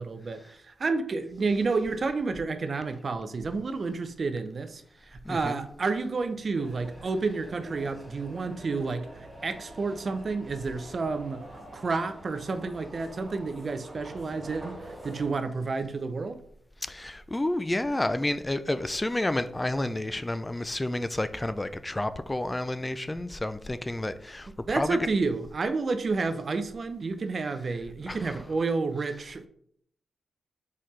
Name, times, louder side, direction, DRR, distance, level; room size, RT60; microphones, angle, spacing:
voice 1, 0.0-4.8 5.1-11.4 11.7-16.4 24.7-29.5, right 4 dB, 50° right, 0.5 m, -30 dB
voice 2, 5.3-5.6 16.8-25.0 28.1-28.4, left 1 dB, 20° left, 0.3 m, -30 dB
sound 1, 6.5-15.3, right 1 dB, 10° right, 1.7 m, -46 dB
4.2 x 3.9 x 3.1 m
cardioid pair, 55°, 0 cm